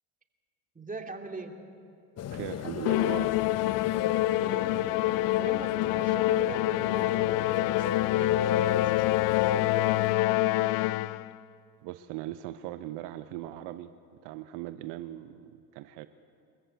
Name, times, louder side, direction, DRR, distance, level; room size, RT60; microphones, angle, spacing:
voice 1, 0.7-1.5 4.4-7.5 8.1-10.0, right 2 dB, 20° right, 3 dB, 2.5 m, -42 dB
sound 1, 2.2-10.2, left 10 dB, 35° left, 0.7 m, -33 dB
voice 2, 2.3-3.3 11.8-13.9 14.2-16.1, right 14 dB, 70° right, 11 dB, 0.8 m, -39 dB
Musical instrument, 2.9-11.3, left 17 dB, 75° left, 0.6 m, -26 dB
23.0 x 14.5 x 8.3 m, 2.6 s
hypercardioid pair, 70°, 44 cm